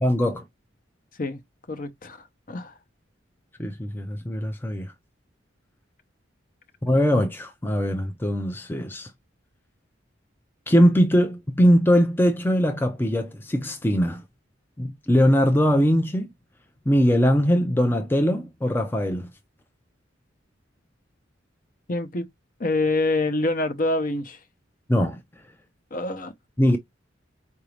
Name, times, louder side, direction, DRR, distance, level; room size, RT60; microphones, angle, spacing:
voice 1, 0.0-0.4 3.6-4.9 6.8-9.1 10.7-14.2 14.8-16.3 16.9-19.3 24.9-25.2 26.6-26.8, equal, 10° left, 0.5 m, -21 dB
voice 2, 1.7-2.7 21.9-22.3 22.6-24.4 25.9-26.3, left 2 dB, 45° left, 0.8 m, -26 dB
4.9 x 2.7 x 3.2 m
head